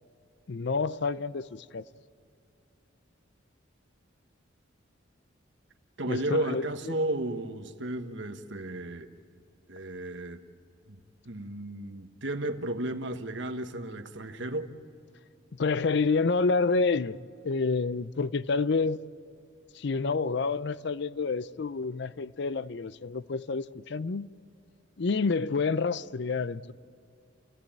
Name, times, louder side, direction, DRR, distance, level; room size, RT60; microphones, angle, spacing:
voice 1, 0.5-1.8 6.1-7.0 15.5-19.0 19.7-24.3 25.0-26.7, left 4 dB, 60° left, 0.5 m, -28 dB
voice 2, 6.0-9.1 9.7-10.4 10.9-11.0 11.2-14.7, right 1 dB, 65° right, 1.3 m, -33 dB
28.5 x 16.5 x 8.8 m
head